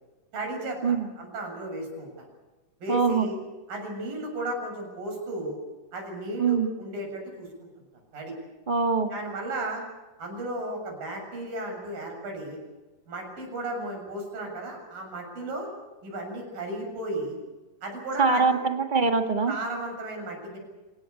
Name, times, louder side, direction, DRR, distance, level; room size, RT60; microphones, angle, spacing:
voice 1, 0.3-0.8 1.2-2.3 2.8-3.4 3.7-5.6 5.9-7.7 8.1-8.3 9.1-9.8 10.2-12.6 13.1-15.7 16.0-17.4 17.8-18.6 19.5-20.6, right 1 dB, 85° right, 2 dB, 9.0 m, -34 dB
voice 2, 2.9-3.3 6.4-6.7 8.7-9.1 18.2-19.5, right 4 dB, 35° right, 5 dB, 0.8 m, -23 dB
27.5 x 17.5 x 8.4 m, 1.2 s
omnidirectional pair, 3.9 m